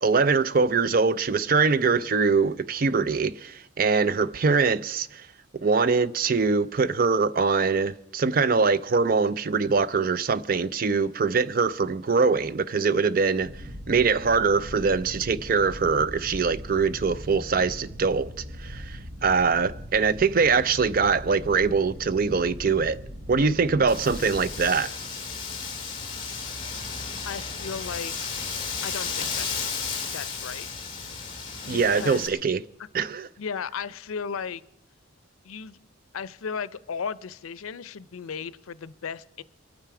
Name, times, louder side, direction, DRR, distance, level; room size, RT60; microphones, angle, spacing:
voice 1, 0.0-5.3 5.6-13.5 13.9-18.3 18.6-23.0 23.3-25.0 31.7-32.6 32.9-33.3, right 4 dB, 45° right, 0.4 m, -23 dB
sound 1, 13.4-24.7, equal, 65° right, 1.3 m, -40 dB
Wind, 23.9-32.3, left 5 dB, 25° left, 1.8 m, -33 dB
voice 2, 27.3-28.1 28.8-29.7 30.1-30.7 31.6-32.3 33.4-34.6 35.4-35.8 36.1-39.4, left 6 dB, 90° left, 0.5 m, -35 dB
23.5 x 9.0 x 4.8 m
head